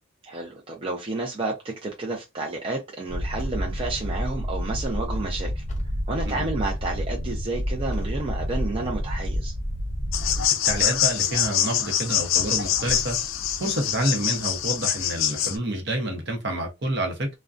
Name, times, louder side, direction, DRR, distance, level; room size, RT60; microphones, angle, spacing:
voice 1, 0.2-5.6 6.1-9.5, right 3 dB, 30° right, 0.5 m, -31 dB
sound 1, 3.1-10.5, equal, 90° right, 0.8 m, -29 dB
sound 2, 3.4-4.3 5.7-6.6 7.9-8.9 10.6-11.5 12.8-13.7, equal, 35° left, 0.7 m, -39 dB
sound 3, 10.1-15.6, left 10 dB, 85° left, 0.3 m, -25 dB
voice 2, 10.6-13.2 13.6-17.3, right 1 dB, 55° right, 0.7 m, -28 dB
2.4 x 2.1 x 2.4 m
head